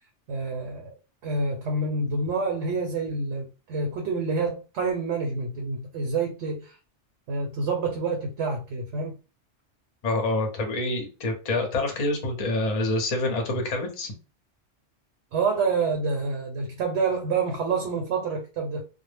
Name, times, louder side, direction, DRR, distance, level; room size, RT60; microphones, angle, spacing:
voice 1, 0.3-0.9 1.2-6.7 7.3-9.1 15.3-18.8, right 4 dB, 75° right, 0.9 m, -27 dB
voice 2, 10.0-14.1, left 2 dB, 40° left, 0.6 m, -27 dB
2.0 x 2.0 x 3.2 m
omnidirectional pair, 1.2 m